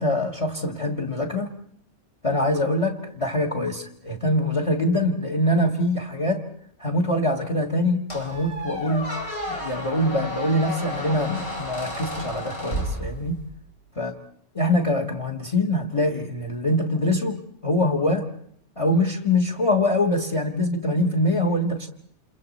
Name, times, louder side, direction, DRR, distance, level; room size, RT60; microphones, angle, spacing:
voice 1, 0.0-1.5 2.2-6.4 6.8-9.1 9.5-13.4 14.0-14.1 14.5-18.3 18.8-21.9, left 1 dB, 30° left, 1.6 m, -24 dB
Squeak, 8.1-13.6, equal, 65° left, 4.6 m, -32 dB
29.5 x 28.0 x 4.1 m
omnidirectional pair, 1.2 m